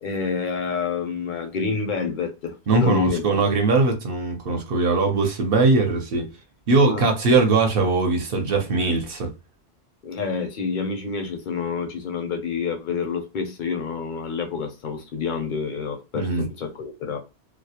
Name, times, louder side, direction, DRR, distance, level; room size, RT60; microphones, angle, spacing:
voice 1, 0.0-3.4 6.9-7.1 10.0-17.2, left 5 dB, 60° left, 0.6 m, -28 dB
voice 2, 2.7-6.3 6.7-9.3 16.1-16.5, right 3 dB, 60° right, 0.8 m, -20 dB
2.2 x 2.0 x 2.8 m
omnidirectional pair, 1.1 m